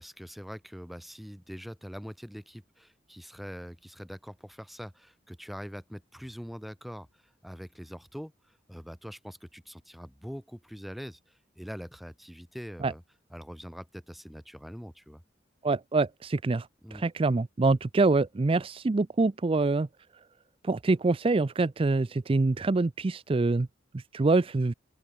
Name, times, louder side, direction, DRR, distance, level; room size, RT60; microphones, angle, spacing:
voice 1, 0.0-13.0 13.3-15.2 16.8-17.0, equal, ahead, 0.9 m, -43 dB
voice 2, 15.6-19.9 20.6-23.7 23.9-24.7, right 3 dB, 30° right, 0.4 m, -25 dB
open air
head